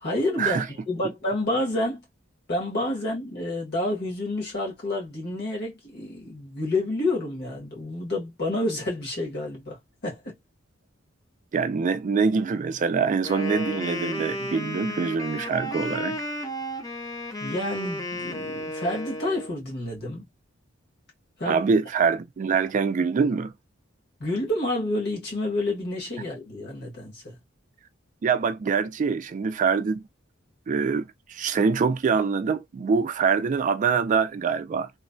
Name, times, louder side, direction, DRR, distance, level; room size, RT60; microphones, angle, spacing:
voice 1, 0.0-2.0 2.5-10.3 17.4-20.3 21.4-21.6 24.2-27.4, left 1 dB, 55° left, 1.4 m, -29 dB
voice 2, 11.5-16.2 21.4-23.5 28.2-30.0 30.7-34.9, right 5 dB, 40° right, 0.3 m, -24 dB
Wind instrument woodwind instrument, 13.2-19.5, left 1 dB, 20° left, 0.6 m, -33 dB
3.1 x 2.1 x 2.5 m
head